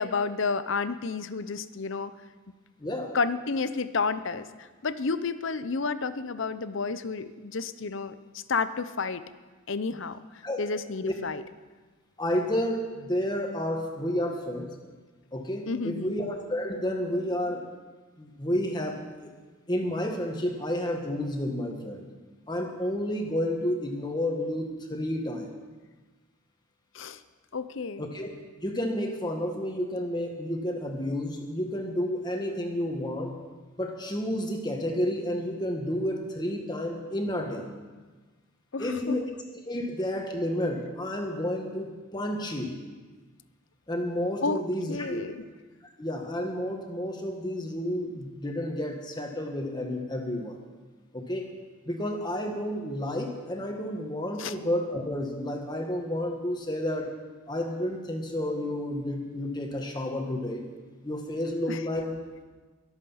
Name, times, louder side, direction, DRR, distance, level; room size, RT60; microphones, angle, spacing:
voice 1, 0.0-2.1 3.1-8.1 8.5-9.2 9.7-10.2 10.6-11.4 15.7-16.1 26.9-27.2 27.5-28.1 38.7-39.2 44.4-44.6 44.9-45.4 54.4-54.5 61.7-61.8, left 4 dB, 65° left, 13 dB, 0.7 m, -30 dB
voice 2, 2.8-3.1 10.4-10.6 12.2-14.7 15.3-17.7 18.2-19.3 19.7-22.1 22.5-25.5 28.0-28.3 28.6-33.3 33.8-37.7 38.8-39.2 39.6-42.8 43.9-45.3 46.0-50.6 51.1-51.5 51.8-57.1 57.5-60.6 61.0-62.1, left 1 dB, 20° left, 2 dB, 1.6 m, -31 dB
23.0 x 8.1 x 5.7 m, 1.3 s
head